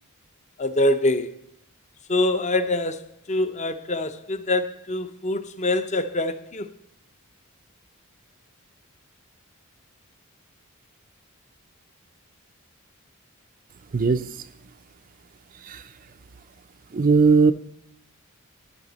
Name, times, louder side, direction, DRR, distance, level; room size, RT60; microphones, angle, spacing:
voice 1, 0.6-1.4 2.1-6.7, left 1 dB, 30° left, 0.7 m, -25 dB
voice 2, 13.9-14.4 15.6-15.8 16.9-17.5, right 4 dB, 40° right, 0.4 m, -19 dB
12.5 x 9.7 x 4.1 m
head